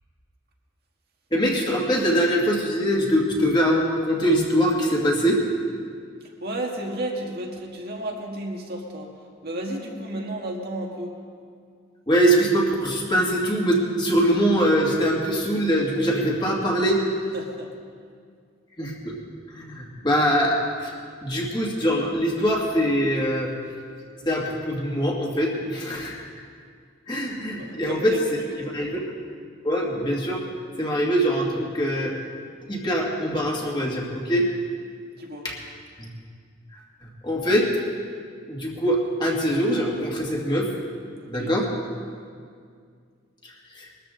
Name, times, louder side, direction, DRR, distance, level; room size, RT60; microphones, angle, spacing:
voice 1, 1.3-5.4 12.1-17.0 18.8-19.2 19.5-20.9 21.2-23.5 24.3-26.3 27.1-28.2 28.7-29.0 29.6-30.4 30.8-32.1 32.7-34.5 35.4-35.5 36.0-36.1 37.2-37.7 38.5-40.7 41.3-41.7 43.8-43.9, equal, 20° left, -3 dB, 2.2 m, -23 dB
voice 2, 6.4-9.1 9.4-11.1 17.3-17.7 27.2-28.5 35.2-35.5 41.2-41.5, right 1 dB, 50° right, 0 dB, 1.7 m, -33 dB
21.5 x 13.5 x 3.8 m, 2.1 s
head